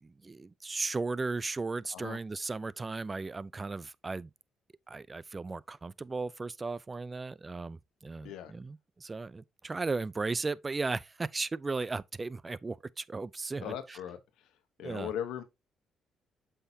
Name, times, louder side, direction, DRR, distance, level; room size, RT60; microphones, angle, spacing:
voice 1, 0.0-4.3 4.9-14.0 14.8-15.1, right 3 dB, 25° right, 0.4 m, -36 dB
voice 2, 13.6-14.2 14.8-15.4, left 10 dB, 90° left, 1.1 m, -38 dB
8.1 x 5.7 x 2.8 m
cardioid pair, 90°, 0 cm